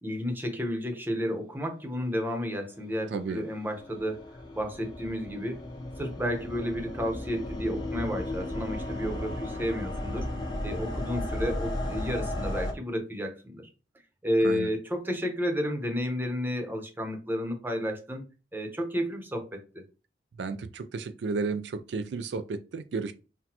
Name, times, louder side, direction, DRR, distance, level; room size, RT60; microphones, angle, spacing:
voice 1, 0.0-5.6 6.0-10.3 10.6-13.7 14.2-18.2 18.5-19.8, equal, 10° right, 0.8 m, -31 dB
sound 1, 3.0-12.7, left 1 dB, 25° left, 0.8 m, -35 dB
voice 2, 3.1-3.4 14.4-14.7 20.4-23.1, right 4 dB, 70° right, 0.4 m, -33 dB
5.9 x 2.2 x 2.8 m
head